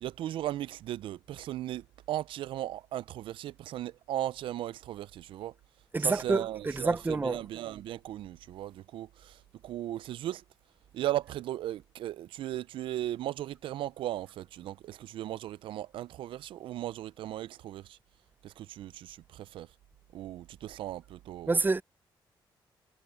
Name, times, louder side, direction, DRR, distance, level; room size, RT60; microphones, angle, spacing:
voice 1, 0.0-5.5 6.0-10.4 10.9-18.0 18.4-19.7 20.1-21.6, right 13 dB, 80° right, 0.4 m, -37 dB
voice 2, 5.9-6.4 6.7-7.4 21.5-21.8, right 3 dB, 20° right, 0.7 m, -27 dB
cardioid pair, 75°, 9 cm